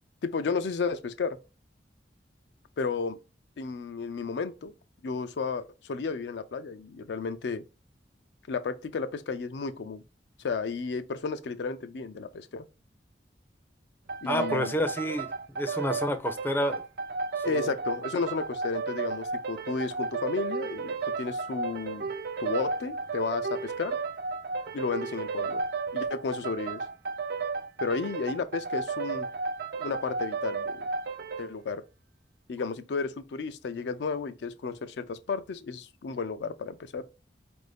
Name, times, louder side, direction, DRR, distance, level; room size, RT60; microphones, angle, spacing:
voice 1, 0.2-1.4 2.8-3.2 3.6-4.7 5.0-7.6 8.5-10.0 10.4-12.7 14.2-14.7 17.4-22.1 22.4-24.0 24.7-25.6 25.9-26.8 27.8-29.3 29.8-30.9 31.4-31.8 32.5-37.0, left 4 dB, 70° left, 0.4 m, -33 dB
sound 1, 14.1-31.5, right 4 dB, 60° right, 0.4 m, -33 dB
voice 2, 14.3-16.8 17.4-17.7, equal, 10° left, 0.4 m, -30 dB
4.4 x 2.6 x 3.3 m
head